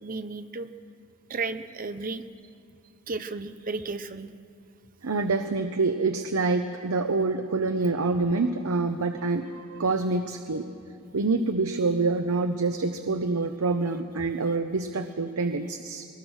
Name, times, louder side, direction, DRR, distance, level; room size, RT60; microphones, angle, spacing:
voice 1, 0.0-0.7 1.3-2.2 3.1-4.3, right 3 dB, 40° right, 10 dB, 0.8 m, -33 dB
voice 2, 5.0-10.7 11.1-16.1, right 3 dB, 75° right, 7 dB, 0.8 m, -26 dB
21.5 x 20.0 x 6.4 m, 2.5 s
head